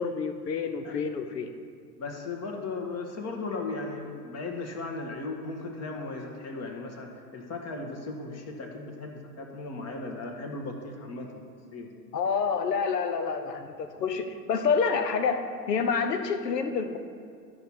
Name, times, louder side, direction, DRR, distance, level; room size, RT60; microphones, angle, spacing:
voice 1, 0.0-1.5 12.1-17.0, left 5 dB, 90° left, 8 dB, 0.9 m, -28 dB
voice 2, 2.0-11.4 11.7-11.9, left 3 dB, 35° left, 2 dB, 1.4 m, -36 dB
11.5 x 4.9 x 5.5 m, 2.1 s
hypercardioid pair, 100°, 48 cm